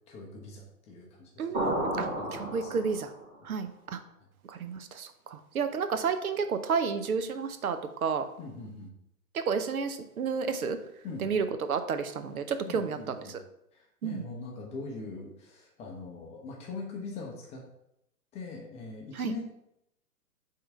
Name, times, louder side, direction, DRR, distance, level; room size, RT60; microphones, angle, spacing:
voice 1, 0.1-2.8 8.4-8.9 11.0-11.4 12.7-13.4 13.7-17.6 18.3-19.4, left 3 dB, 15° left, 0 dB, 0.7 m, -42 dB
voice 2, 1.4-2.1 2.4-3.1 3.4-4.0 4.5-8.3 9.3-10.8 11.2-13.0 14.0-14.2 19.2-19.3, right 5 dB, 65° right, 9 dB, 0.7 m, -31 dB
sound 1, 1.5-3.3, right 1 dB, 20° right, 2.4 m, -32 dB
5.4 x 3.7 x 5.3 m, 0.80 s
figure-of-eight pair, 110°, 47 cm